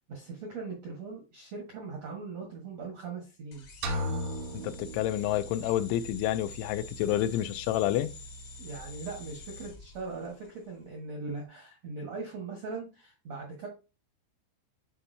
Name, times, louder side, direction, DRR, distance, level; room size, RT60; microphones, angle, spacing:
voice 1, 0.1-3.6 8.6-13.7, right 4 dB, 70° right, 1.5 m, -40 dB
sound 1, 3.5-10.6, left 1 dB, 70° left, 1.4 m, -46 dB
sound 2, 3.8-5.8, equal, 90° right, 3.5 m, -35 dB
voice 2, 4.5-8.1, left 13 dB, 85° left, 2.9 m, -29 dB
9.7 x 4.5 x 2.7 m
omnidirectional pair, 5.3 m